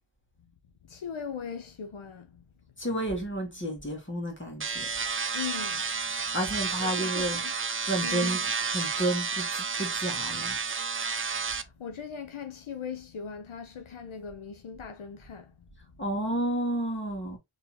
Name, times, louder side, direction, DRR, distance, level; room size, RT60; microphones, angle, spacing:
voice 1, 0.9-2.4 5.3-5.9 6.8-7.5 8.0-8.3 11.6-15.5, left 6 dB, 75° left, 0.8 m, -39 dB
voice 2, 2.8-4.8 6.3-10.6 16.0-17.4, right 1 dB, 25° left, 1.8 m, -31 dB
sound 1, 4.6-11.6, right 5 dB, 25° right, 0.4 m, -31 dB
3.9 x 3.4 x 2.9 m
wide cardioid pair, 70°, 49 cm